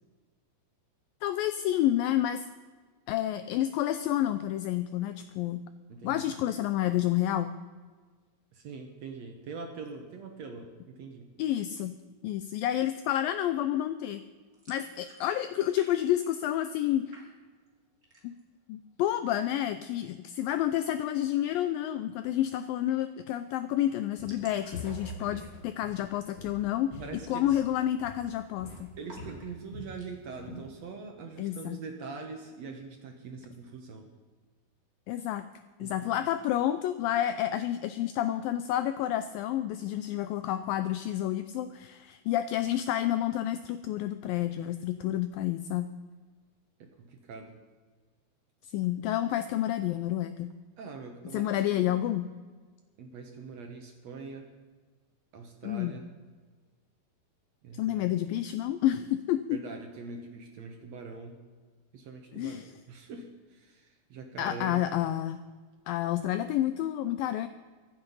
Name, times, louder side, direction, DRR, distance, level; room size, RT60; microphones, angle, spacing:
voice 1, 1.2-2.5 3.1-5.7 6.0-7.5 11.4-11.9 12.2-14.2 14.7-17.2 18.2-18.3 18.7-27.0 27.3-28.9 31.4-31.8 35.1-35.5 35.8-45.9 48.7-50.5 51.3-52.3 55.6-55.9 57.7-59.6 62.3-62.7 64.4-65.4 65.9-67.5, left 12 dB, 85° left, 11 dB, 2.0 m, -29 dB
voice 2, 5.9-6.2 8.5-11.3 27.0-27.6 29.0-34.1 35.8-36.1 46.8-47.6 50.8-52.0 53.0-54.5 55.3-56.1 57.6-58.2 59.5-61.4 61.9-64.8, right 4 dB, 70° right, 4 dB, 1.6 m, -43 dB
sound 1, 14.5-15.9 16.1-16.8 17.1-17.7 18.0-18.5 18.9-19.0 19.3-19.9 21.6-21.8 22.1-22.2 22.4-22.5 22.9-23.2 23.5-23.6 23.8-25.8 26.2-26.4 26.8-26.9 27.4-27.7 28.0-28.6 29.0-30.1, right 2 dB, 25° right, 3.1 m, -55 dB
Walk footsteps, 24.2-24.5 24.7-27.8 28.0-28.3 28.6-30.0 30.3-30.7, left 1 dB, 40° left, 3.3 m, -44 dB
24.0 x 7.9 x 5.5 m, 1.4 s
omnidirectional pair, 4.6 m